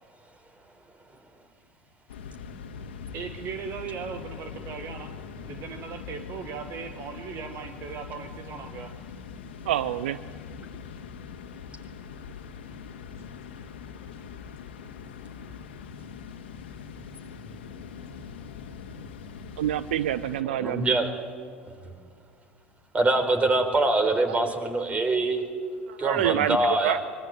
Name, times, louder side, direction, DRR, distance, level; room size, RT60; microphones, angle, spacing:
sound 1, 2.1-20.4, left 6 dB, 70° left, 2.1 m, -42 dB
voice 1, 3.1-5.1 5.4-8.9, right 6 dB, 45° right, 7 dB, 1.6 m, -38 dB
voice 2, 9.6-10.2 19.6-20.8 24.3-24.4 25.9-27.0, right 12 dB, 65° right, 15 dB, 0.6 m, -27 dB
voice 3, 20.4-21.2 21.8-21.9 22.9-25.4 26.0-27.0, right 2 dB, 20° right, 7 dB, 4.2 m, -24 dB
24.0 x 24.0 x 9.2 m, 2.1 s
figure-of-eight pair, 75°, 6 cm